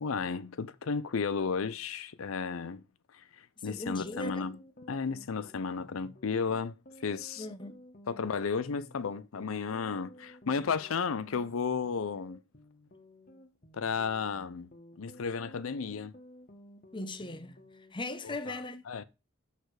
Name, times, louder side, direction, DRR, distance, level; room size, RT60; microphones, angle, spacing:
voice 1, 0.0-2.8 3.1-4.6 4.9-6.7 7.0-7.5 8.1-12.4 13.7-14.7 15.0-16.1 18.2-18.6 18.9-19.0, left 5 dB, 85° left, 0.6 m, -33 dB
voice 2, 3.6-4.4 7.4-7.8 16.9-17.6 17.9-18.8, left 2 dB, 25° left, 0.9 m, -38 dB
sound 1, 4.0-17.9, equal, 45° left, 1.5 m, -54 dB
6.6 x 6.6 x 4.7 m
head